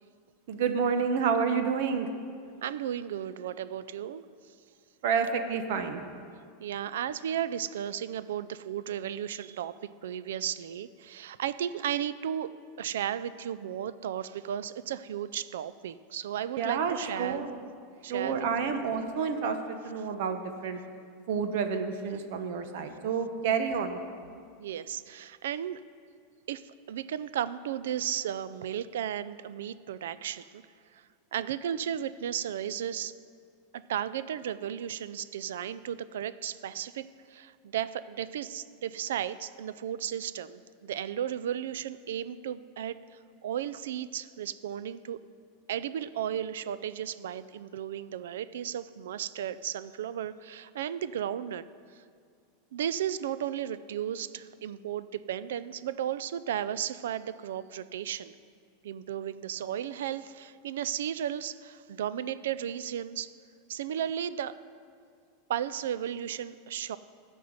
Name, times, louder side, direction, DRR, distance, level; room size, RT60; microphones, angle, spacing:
voice 1, 0.5-2.1 5.0-6.0 16.6-17.6 18.1-20.8 21.3-24.0, right 6 dB, 65° right, 7 dB, 1.0 m, -29 dB
voice 2, 2.6-4.2 6.6-9.8 10.0-12.5 12.8-17.5 18.0-18.8 24.6-25.8 26.5-30.6 30.9-31.0 31.3-33.1 33.7-43.0 43.4-45.2 45.7-51.6 52.7-58.3 58.8-63.3 63.7-64.6 65.5-67.0, right 10 dB, 90° right, 16 dB, 0.4 m, -34 dB
12.5 x 5.4 x 7.9 m, 2.2 s
supercardioid pair, 145°, 0 cm